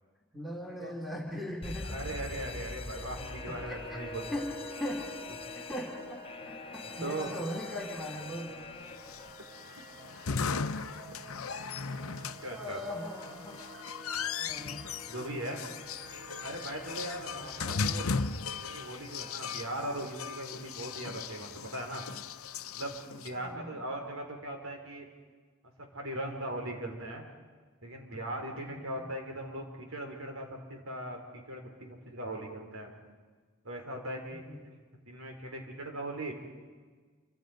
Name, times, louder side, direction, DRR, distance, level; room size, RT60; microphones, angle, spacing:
voice 1, 0.3-2.0 3.7-3.8 4.3-4.4 4.8-5.1 5.5-8.7 12.4-13.6 14.4-14.8 17.3-17.6 23.3-23.8 28.7-28.8 34.3-34.6, left 1 dB, ahead, -1 dB, 2.9 m, -39 dB
Alarm, 1.6-9.3, left 4 dB, 25° left, 0.7 m, -44 dB
voice 2, 1.8-4.3 7.0-7.3 12.2-12.8 15.0-15.6 16.4-22.0 22.7-25.1 25.9-27.2 27.8-32.9 33.6-34.7 35.1-36.3, right 1 dB, 75° right, 2 dB, 4.6 m, -39 dB
sound 1, 2.0-20.0, equal, 35° right, 5.6 m, -48 dB
sound 2, 9.0-23.3, left 5 dB, 85° left, 0.8 m, -37 dB
28.5 x 26.0 x 5.3 m, 1.5 s
head